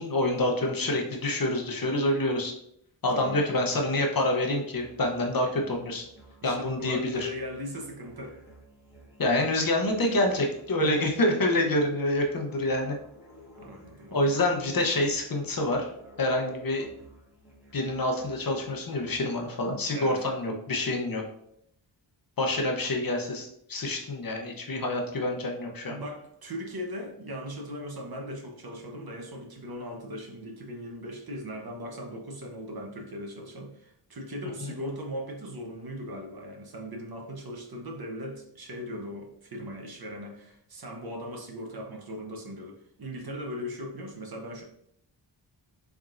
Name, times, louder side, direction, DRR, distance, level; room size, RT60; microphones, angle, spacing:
voice 1, 0.0-2.5 3.0-6.0 6.4-7.3 9.2-12.9 14.1-15.9 16.2-16.9 17.7-21.2 22.4-25.9 34.6-34.8, left 1 dB, 50° left, 2 dB, 0.8 m, -27 dB
voice 2, 3.1-3.5 5.5-5.7 6.4-8.4 10.8-11.1 13.6-14.4 19.9-20.2 25.9-44.6, equal, 55° right, 2 dB, 0.9 m, -39 dB
Musical instrument, 4.7-19.5, right 1 dB, 5° right, 1.3 m, -54 dB
3.9 x 3.5 x 2.5 m, 0.72 s
wide cardioid pair, 80°, 45 cm